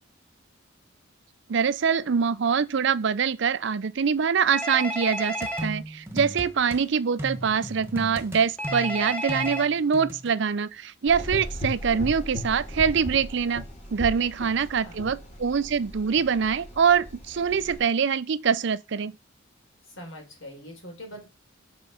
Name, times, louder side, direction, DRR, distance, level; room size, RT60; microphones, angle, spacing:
voice 1, 1.5-13.6 13.9-19.1, right 6 dB, 65° right, 0.5 m, -24 dB
Telephone, 4.5-5.7 8.6-9.7, right 1 dB, 5° left, 1.1 m, -31 dB
sound 1, 5.4-6.8 7.2-10.3, equal, 15° right, 1.3 m, -36 dB
Gurgling / Engine, 11.1-17.8, left 1 dB, 35° left, 2.3 m, -37 dB
voice 2, 14.4-15.0 19.9-21.2, equal, 80° left, 3.9 m, -43 dB
6.8 x 4.7 x 5.5 m
head